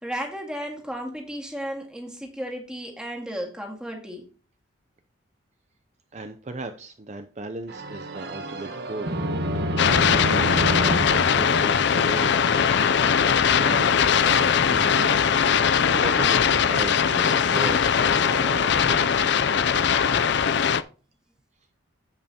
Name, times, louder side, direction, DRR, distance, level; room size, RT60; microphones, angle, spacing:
voice 1, 0.0-4.3, equal, 5° right, 1.9 m, -34 dB
voice 2, 6.1-9.1 9.5-10.8 11.1-12.4 13.0-19.4, right 2 dB, 35° right, 0.5 m, -36 dB
sound 1, 7.7-12.5, equal, 50° right, 1.1 m, -28 dB
sound 2, 9.8-20.8, left 7 dB, 55° left, 0.4 m, -20 dB
15.0 x 5.5 x 2.9 m
head